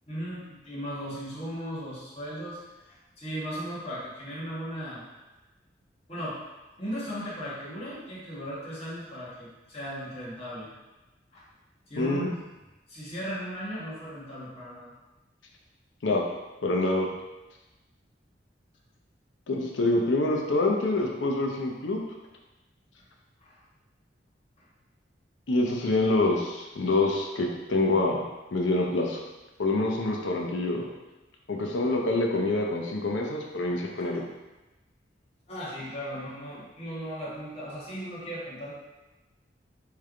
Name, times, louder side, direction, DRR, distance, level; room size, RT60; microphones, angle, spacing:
voice 1, 0.1-5.1 6.1-6.4 6.8-10.7 11.3-11.4 11.9-12.2 12.9-14.9 23.4-23.6 34.0-34.1 35.5-38.7, equal, 35° left, -9 dB, 1.5 m, -37 dB
voice 2, 12.0-12.3 16.0-16.2 16.6-17.1 19.5-22.0 25.5-28.2 28.5-29.2 29.6-30.9 31.5-34.2, left 2 dB, 85° left, 1 dB, 0.7 m, -26 dB
3.3 x 3.3 x 3.7 m, 1.1 s
head